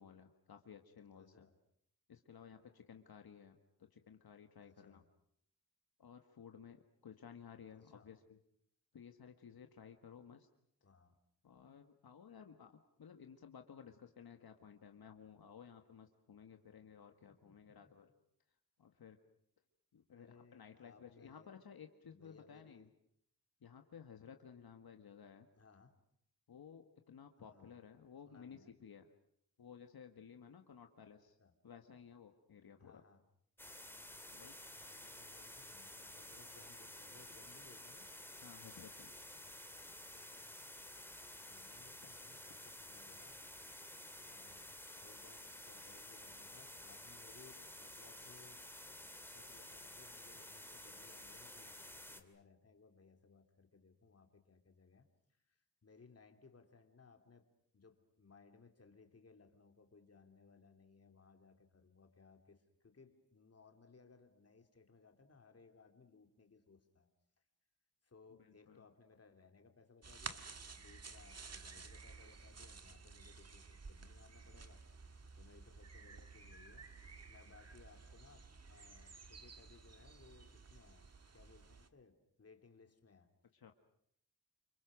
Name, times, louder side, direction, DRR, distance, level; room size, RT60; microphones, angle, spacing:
voice 1, 0.0-1.5 2.1-5.0 6.0-8.4 8.9-10.5 11.4-18.1 18.8-19.2 19.9-22.9 23.6-25.5 26.5-29.1 29.6-31.4 31.6-33.0 34.3-34.6 38.4-39.2 68.3-68.9 83.5-83.7, left 7 dB, 75° left, 6 dB, 1.7 m, -56 dB
voice 2, 1.2-1.5 4.6-5.1 7.9-8.1 10.8-11.2 17.3-18.1 20.1-21.5 22.1-22.9 25.6-26.0 27.4-27.8 28.3-28.7 31.4-31.5 32.8-33.2 34.8-38.1 41.4-43.4 44.2-48.7 49.3-55.1 55.5-55.6 55.8-57.5 57.7-67.1 68.0-74.8 75.3-76.9 77.3-81.1 81.3-83.3, left 4 dB, 40° left, 5 dB, 2.8 m, -64 dB
sound 1, 33.6-52.2, left 1 dB, 5° left, 2.3 m, -52 dB
sound 2, 70.0-81.9, right 4 dB, 40° right, 1.6 m, -53 dB
29.0 x 26.0 x 6.3 m, 0.71 s
wide cardioid pair, 135°, 37 cm